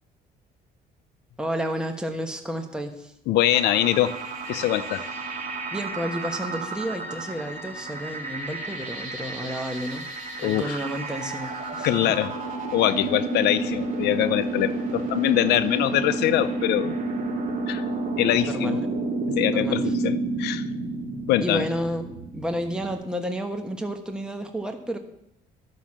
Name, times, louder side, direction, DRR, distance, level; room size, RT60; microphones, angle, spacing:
voice 1, 1.4-3.1 5.7-10.1 10.4-12.2 18.4-18.9 19.5-19.9 21.4-25.0, equal, 5° right, 4 dB, 1.2 m, -31 dB
voice 2, 3.3-4.1 4.5-5.0 10.4-10.8 11.8-12.3 12.7-16.9 17.7-17.8 18.2-18.8 19.3-20.6 21.3-21.7, left 13 dB, 80° left, 10 dB, 0.6 m, -23 dB
sound 1, 3.5-22.9, right 3 dB, 55° right, 2.7 m, -31 dB
sound 2, 4.4-11.3, equal, 10° left, 1.3 m, -42 dB
12.0 x 6.3 x 7.4 m, 0.78 s
cardioid pair, 110°, 17 cm